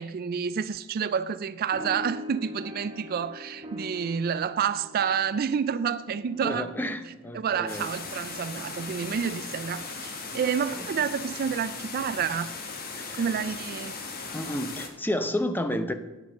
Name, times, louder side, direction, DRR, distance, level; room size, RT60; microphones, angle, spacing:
voice 1, 0.0-6.7 7.3-12.6 13.1-13.9, right 7 dB, 45° right, 0.3 m, -29 dB
sound 1, 1.7-8.6, left 1 dB, 25° right, 1.3 m, -43 dB
voice 2, 6.4-7.9 10.8-10.9 13.0-13.2 14.3-15.9, left 1 dB, 10° left, 0.7 m, -31 dB
sound 2, 7.7-14.9, left 4 dB, 45° left, 1.5 m, -38 dB
9.7 x 6.8 x 6.5 m
head